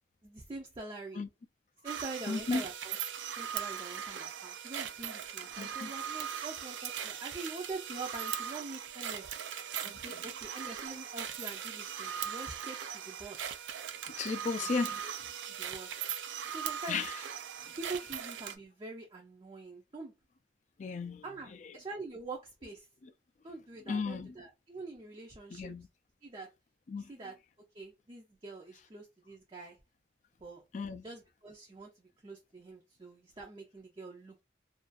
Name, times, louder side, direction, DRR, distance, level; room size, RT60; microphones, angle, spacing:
voice 1, 0.2-1.2 1.8-2.9 3.4-9.4 9.8-13.6 14.6-15.0 15.5-15.9 16.5-17.0 17.8-20.1 21.2-22.9 23.4-25.7 26.2-26.5 27.0-27.4 27.7-29.8 30.4-30.6 31.0-34.4, right 3 dB, 25° right, 0.4 m, -45 dB
sound 1, 1.9-18.6, right 8 dB, 90° right, 0.4 m, -39 dB
voice 2, 2.3-2.6 5.6-5.9 9.9-10.2 14.1-15.0 16.9-17.2 17.6-17.8 20.8-21.8 23.0-23.1 23.9-24.4 25.5-25.9 26.9-27.1 30.7-31.0, left 4 dB, 40° left, 0.3 m, -35 dB
2.5 x 2.3 x 2.4 m
head